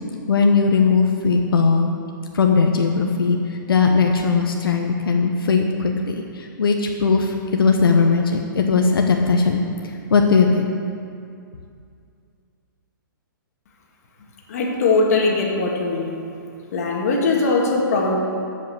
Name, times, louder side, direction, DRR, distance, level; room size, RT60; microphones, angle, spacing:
voice 1, 0.3-1.9 2.3-10.8, left 4 dB, 90° left, 2 dB, 1.0 m, -19 dB
voice 2, 14.5-16.1 16.7-18.2, left 3 dB, 45° left, 0 dB, 1.9 m, -20 dB
13.0 x 5.6 x 7.0 m, 2.4 s
hypercardioid pair, 170°, 12 cm